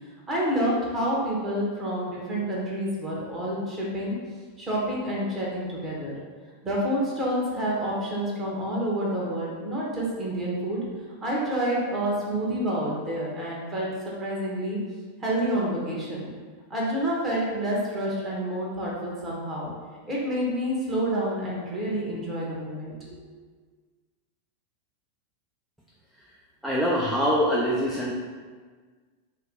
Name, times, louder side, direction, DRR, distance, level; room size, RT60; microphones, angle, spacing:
voice 1, 0.3-4.1 4.6-6.1 6.6-10.8 11.2-14.8 15.2-16.3 16.7-19.7 20.1-23.2, right 1 dB, 20° right, -5 dB, 1.2 m, -28 dB
voice 2, 26.6-28.1, equal, 5° right, -6 dB, 0.5 m, -24 dB
4.0 x 2.3 x 4.1 m, 1.5 s
figure-of-eight pair, 90°, 0 cm